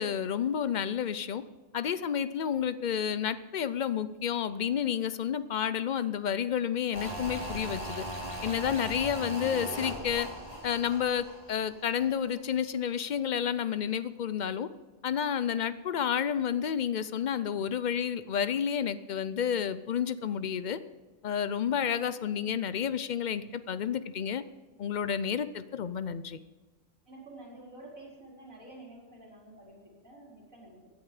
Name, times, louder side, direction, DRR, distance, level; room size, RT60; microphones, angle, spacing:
voice 1, 0.0-1.4 1.7-8.1 8.4-10.3 10.6-14.7 15.0-20.8 21.2-24.4 24.8-26.4, left 8 dB, 55° left, 14 dB, 0.5 m, -30 dB
sound 1, 6.9-12.1 12.4-12.5, right 1 dB, 30° left, 3.3 m, -39 dB
voice 2, 27.1-30.9, right 1 dB, 90° right, -5 dB, 4.8 m, -50 dB
16.5 x 10.5 x 4.9 m, 1.3 s
omnidirectional pair, 1.4 m